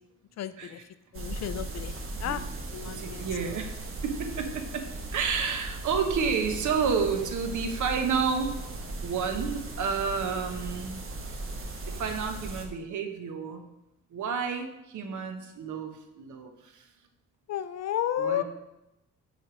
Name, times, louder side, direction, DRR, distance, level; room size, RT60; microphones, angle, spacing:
voice 1, 0.4-0.8 1.1-2.4 2.7-3.3 17.5-18.4, left 10 dB, 60° left, 13 dB, 0.4 m, -32 dB
sound 1, 1.1-12.7, right 2 dB, 45° right, 1.0 m, -38 dB
voice 2, 2.9-8.7 9.0-11.0 11.8-13.7 14.1-16.9 18.2-18.4, right 6 dB, 75° right, 6 dB, 1.0 m, -30 dB
7.8 x 3.4 x 6.1 m, 0.92 s
wide cardioid pair, 165°, 30 cm